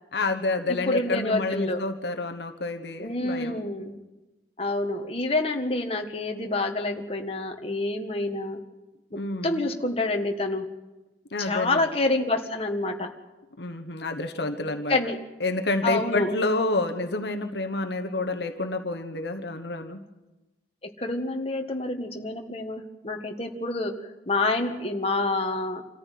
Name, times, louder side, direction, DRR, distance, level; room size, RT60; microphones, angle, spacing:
voice 1, 0.1-3.6 9.1-9.7 11.3-11.9 13.6-15.0 15.4-20.0, left 2 dB, 65° left, 6 dB, 1.3 m, -28 dB
voice 2, 0.9-1.8 3.0-4.0 4.6-8.6 9.4-10.7 11.4-13.1 14.9-15.2 15.8-16.3 20.8-25.8, left 2 dB, 30° left, 3 dB, 1.6 m, -27 dB
26.0 x 14.5 x 9.3 m, 1.1 s
head